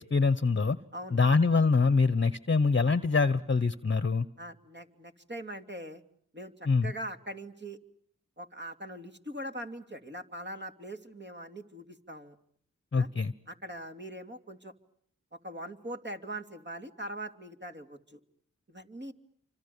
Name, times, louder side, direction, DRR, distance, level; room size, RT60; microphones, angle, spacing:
voice 1, 0.0-0.8 1.1-4.2 6.6-6.9 12.9-13.3, left 4 dB, 35° left, 15 dB, 1.2 m, -24 dB
voice 2, 4.4-6.0 6.3-7.8 8.4-12.4 12.9-13.1 13.5-14.7 15.3-18.2 18.7-19.1, right 1 dB, 35° right, 6 dB, 2.9 m, -42 dB
29.0 x 25.5 x 7.0 m, 0.64 s
cardioid pair, 45°, 33 cm